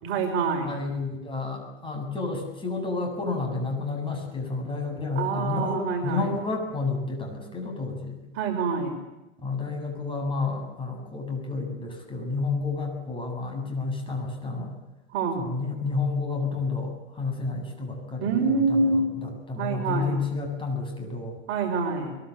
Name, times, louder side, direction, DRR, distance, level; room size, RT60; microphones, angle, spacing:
voice 1, 0.0-0.7 5.2-6.3 8.3-9.0 15.1-15.5 18.2-19.0 19.6-20.2 21.5-22.2, right 4 dB, 40° right, 3 dB, 6.1 m, -26 dB
voice 2, 0.6-8.2 9.4-14.8 15.4-21.4, left 3 dB, 15° left, 2 dB, 7.8 m, -30 dB
23.0 x 23.0 x 8.6 m, 0.98 s
hypercardioid pair, 130°, 33 cm